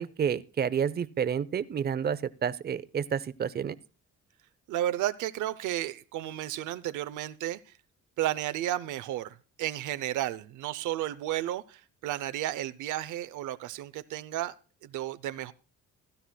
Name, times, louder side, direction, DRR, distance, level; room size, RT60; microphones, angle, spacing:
voice 1, 0.0-3.8, right 7 dB, 35° right, 0.6 m, -30 dB
voice 2, 4.7-7.7 8.2-14.5 14.8-15.5, right 13 dB, 80° right, 0.6 m, -33 dB
16.0 x 12.5 x 2.2 m
cardioid pair, 90°, 30 cm